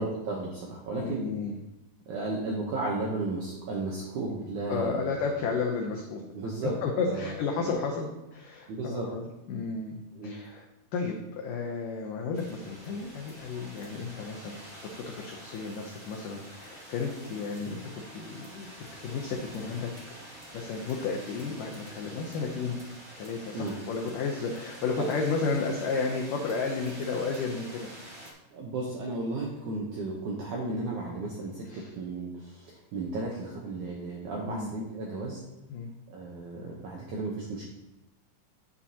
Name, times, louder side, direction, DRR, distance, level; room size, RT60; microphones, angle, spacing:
voice 1, 0.0-1.2 2.1-5.1 6.3-6.8 7.1-7.3 8.7-9.1 10.1-10.3 23.5-23.7 28.5-35.4 36.1-37.7, right 2 dB, 80° right, -2 dB, 1.7 m, -34 dB
voice 2, 1.0-1.6 4.7-6.2 6.8-9.2 9.5-10.6 10.9-17.8 18.1-18.7 19.0-20.1 20.5-22.8 23.2-27.9 31.7-31.9 34.4-34.7 35.7-35.9, left 4 dB, 85° left, 1 dB, 1.9 m, -32 dB
sound 1, 12.3-28.3, right 1 dB, 40° right, 0.9 m, -47 dB
9.5 x 7.0 x 2.8 m, 0.96 s
omnidirectional pair, 4.8 m